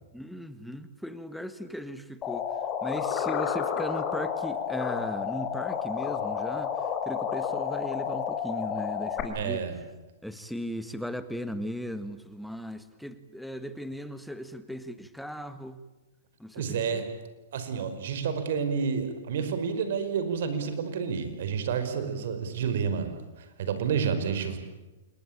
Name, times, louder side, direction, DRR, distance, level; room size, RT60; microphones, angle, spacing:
voice 1, 0.1-2.5 2.8-9.6 10.2-15.8 16.4-17.0 22.0-22.3, equal, ahead, 11 dB, 1.7 m, -37 dB
sound 1, 2.2-9.2, left 8 dB, 30° left, 4.0 m, -31 dB
voice 2, 9.3-9.8 16.5-17.1 17.5-24.6, right 6 dB, 65° right, 9 dB, 4.9 m, -30 dB
28.0 x 21.0 x 8.8 m, 1.1 s
hypercardioid pair, 125°, 0 cm